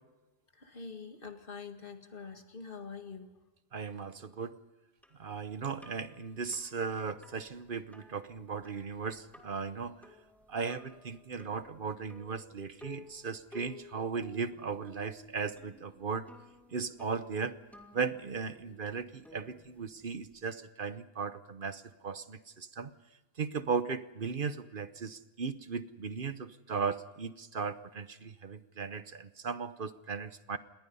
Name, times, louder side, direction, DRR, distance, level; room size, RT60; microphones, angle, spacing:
voice 1, 0.6-3.3, left 5 dB, 55° left, 6 dB, 2.1 m, -45 dB
voice 2, 3.7-4.6 5.2-10.0 10.5-16.3 16.7-17.6 17.9-22.9 23.4-30.6, right 5 dB, 55° right, 12 dB, 1.1 m, -37 dB
sound 1, 5.0-20.4, left 1 dB, ahead, 2.7 m, -56 dB
28.5 x 21.0 x 5.5 m, 1.1 s
omnidirectional pair, 1.1 m